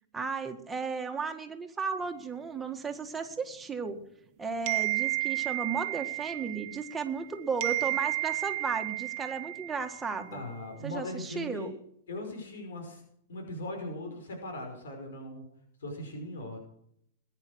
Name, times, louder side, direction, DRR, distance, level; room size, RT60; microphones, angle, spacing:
voice 1, 0.1-4.0 4.4-10.4 10.8-11.7, right 5 dB, 10° right, 4 dB, 1.8 m, -34 dB
sound 1, 4.7-7.3 7.6-10.2, right 21 dB, 40° right, 1.0 m, -32 dB
voice 2, 10.3-11.7 12.1-13.0 13.3-15.4 15.8-16.6, left 1 dB, 90° left, 3 dB, 5.4 m, -39 dB
20.5 x 9.9 x 6.4 m, 0.72 s
hypercardioid pair, 155°, 0 cm